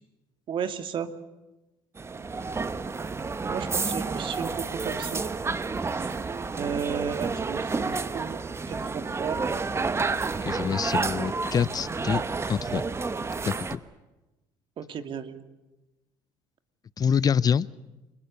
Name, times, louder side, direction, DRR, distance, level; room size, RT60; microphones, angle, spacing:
voice 1, 0.5-1.1 3.5-5.2 6.0-6.1 6.6-8.4 8.7-9.4 14.8-15.4, right 7 dB, 50° right, 9 dB, 2.2 m, -34 dB
sound 1, 2.0-13.8, right 4 dB, 25° right, 1.2 m, -30 dB
voice 2, 10.4-12.2 12.5-12.8 13.5-13.8 17.0-17.7, left 7 dB, 35° left, 20 dB, 0.8 m, -26 dB
29.5 x 21.0 x 6.9 m, 1.0 s
supercardioid pair, 80°, 11 cm